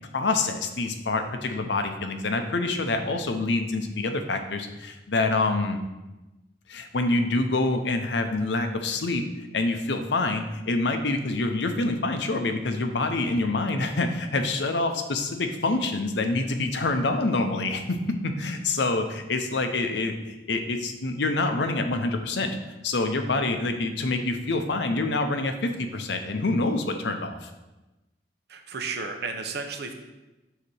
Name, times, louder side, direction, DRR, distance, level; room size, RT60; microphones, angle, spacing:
voice 1, 0.0-5.8 6.7-9.2 9.5-22.6 22.8-27.5, left 2 dB, 70° left, 6 dB, 0.7 m, -26 dB
voice 2, 28.5-29.9, right 4 dB, 65° right, 5 dB, 0.8 m, -33 dB
8.0 x 2.9 x 6.2 m, 1.1 s
head